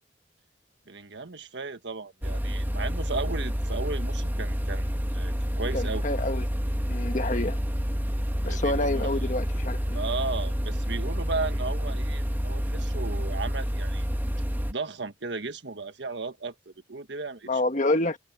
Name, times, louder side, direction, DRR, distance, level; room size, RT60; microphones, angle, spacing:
voice 1, 0.9-6.1 8.5-9.3 9.9-14.1 14.7-17.6, right 3 dB, 70° right, 1.5 m, -35 dB
sound 1, 2.2-14.7, equal, 10° right, 1.5 m, -29 dB
voice 2, 5.7-6.4 6.9-7.6 8.4-10.0 17.5-18.2, left 2 dB, 45° left, 1.4 m, -28 dB
sound 2, 12.8-13.0 14.1-14.3, equal, 20° left, 4.2 m, -50 dB
head